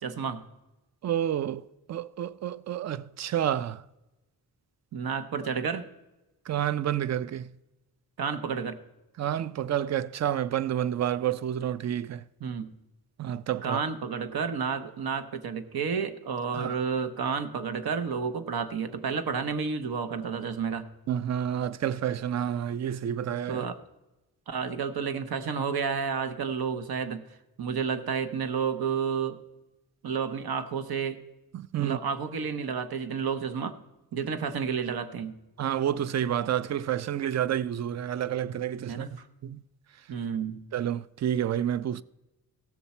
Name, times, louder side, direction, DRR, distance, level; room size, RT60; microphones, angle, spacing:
voice 1, 0.0-0.5 4.9-5.9 8.2-8.8 12.4-12.7 13.6-20.9 23.5-23.8 24.5-27.2 27.6-29.4 30.0-31.2 31.8-33.8 34.1-35.4 38.9-39.3 40.1-40.6, right 6 dB, 70° right, 0.9 m, -31 dB
voice 2, 1.0-3.8 6.5-7.5 9.2-12.2 13.2-13.8 16.5-16.7 21.1-23.7 31.5-32.0 35.6-39.1 39.4-39.6 40.7-42.0, right 10 dB, 45° right, 0.4 m, -29 dB
16.0 x 6.9 x 4.2 m
wide cardioid pair, 105°, 38 cm